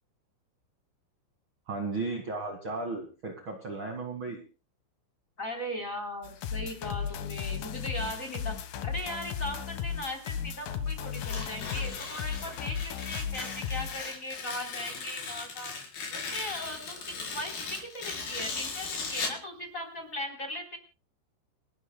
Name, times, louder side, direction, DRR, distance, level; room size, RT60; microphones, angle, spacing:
voice 1, 1.7-4.4, right 3 dB, 55° right, 3 dB, 1.4 m, -35 dB
voice 2, 5.4-8.5 8.8-15.7 16.1-20.8, equal, 20° left, 5 dB, 3.3 m, -38 dB
sound 1, 6.2-14.1, left 8 dB, 65° left, 2.4 m, -35 dB
Tearing, 11.1-19.4, left 4 dB, 50° left, 6.0 m, -38 dB
29.5 x 12.0 x 2.2 m, 0.33 s
omnidirectional pair, 5.8 m